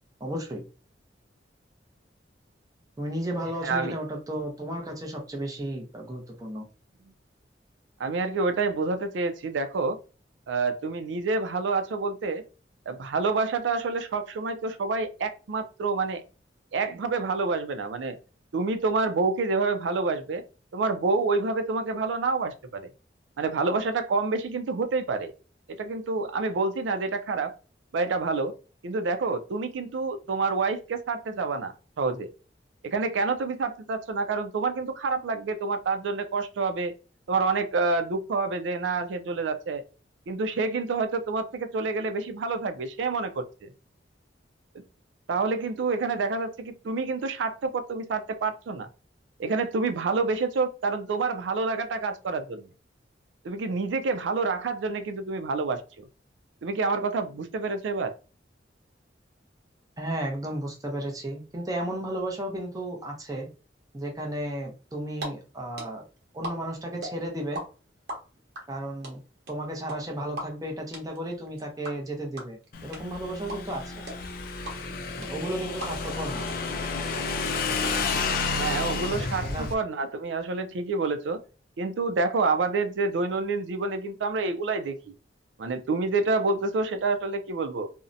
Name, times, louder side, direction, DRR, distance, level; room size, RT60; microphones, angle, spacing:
voice 1, 0.2-0.6 3.0-6.6 60.0-63.5 63.9-66.0 66.3-67.6 68.7-69.2 69.5-74.0 75.2-76.5 79.4-79.7, right 1 dB, 20° right, 0.6 m, -33 dB
voice 2, 3.6-4.0 8.0-10.0 10.5-12.5 12.9-16.2 16.7-18.2 18.5-20.4 20.7-22.9 23.4-25.3 25.7-27.5 27.9-28.5 28.8-32.3 32.8-36.9 37.3-39.8 40.3-43.7 45.3-48.9 49.4-52.7 53.4-55.8 56.6-58.1 78.6-81.4 81.8-85.1 85.6-87.9, right 3 dB, 85° right, 0.4 m, -28 dB
sound 1, 64.9-65.3 65.5-67.6 67.9-76.2 76.5-76.6 76.8-77.9, right 1 dB, 65° right, 0.9 m, -38 dB
Motorcycle / Engine, 72.7-79.7, left 4 dB, 55° left, 0.4 m, -31 dB
2.6 x 2.0 x 2.5 m
head